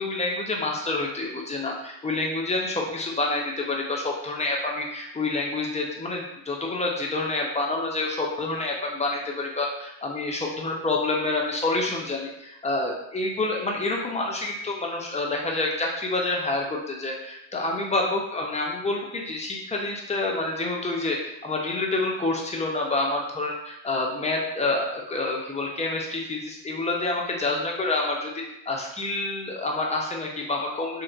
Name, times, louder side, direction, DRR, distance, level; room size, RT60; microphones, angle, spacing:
voice 1, 0.0-31.0, left 2 dB, 20° left, -1 dB, 0.5 m, -28 dB
2.8 x 2.2 x 2.4 m, 0.86 s
cardioid pair, 90°, 36 cm